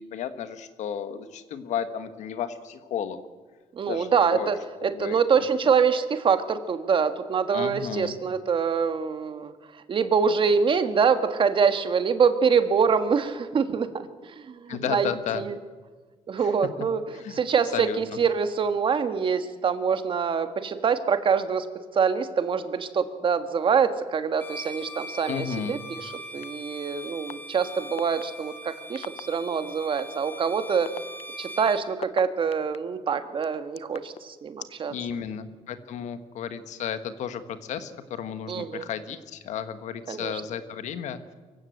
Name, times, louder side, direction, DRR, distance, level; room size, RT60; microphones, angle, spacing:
voice 1, 0.0-3.2 3.9-4.5 4.8-5.2 5.6-5.7 7.5-8.2 14.7-15.4 16.4-16.7 17.1-17.4 17.7-18.2 25.3-25.8 34.9-41.3, left 8 dB, 75° left, 11 dB, 1.5 m, -33 dB
voice 2, 3.7-4.5 4.8-9.5 9.9-15.1 15.3-15.5 16.3-17.0 17.3-21.7 21.9-30.9 31.4-34.9 38.5-38.9 40.1-40.3, right 6 dB, 45° right, 10 dB, 1.5 m, -25 dB
Bowed string instrument, 24.4-31.9, equal, 15° left, 2.5 m, -41 dB
sound 1, 26.4-26.5 27.3-27.4 28.0-28.2 29.0-29.2 30.0-30.1 30.7-32.8 33.4-34.2, left 10 dB, 55° left, 0.6 m, -37 dB
24.0 x 15.0 x 7.9 m, 1.4 s
cardioid pair, 120°, 12 cm